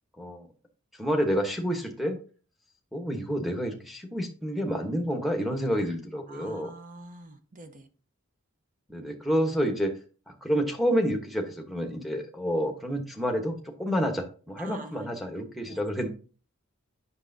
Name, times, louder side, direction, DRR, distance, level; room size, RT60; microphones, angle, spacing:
voice 1, 0.2-0.5 1.0-2.2 2.9-6.7 8.9-9.9 10.3-16.1, equal, ahead, 1.1 m, -29 dB
voice 2, 6.3-7.9 14.6-15.0 15.7-15.8, right 2 dB, 40° right, 0.8 m, -45 dB
8.2 x 6.1 x 2.7 m
head